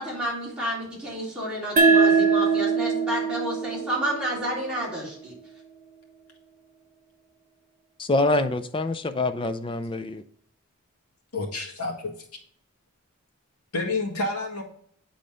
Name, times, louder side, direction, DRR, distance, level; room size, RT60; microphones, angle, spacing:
voice 1, 0.0-5.3, equal, 5° right, -7 dB, 3.2 m, -30 dB
sound 1, 1.8-5.0, right 4 dB, 35° right, 0.8 m, -22 dB
voice 2, 8.0-10.2, left 2 dB, 20° left, 10 dB, 0.4 m, -25 dB
voice 3, 11.3-12.4 13.7-14.6, left 2 dB, 85° left, 0 dB, 1.7 m, -29 dB
8.6 x 3.9 x 5.0 m, 0.62 s
head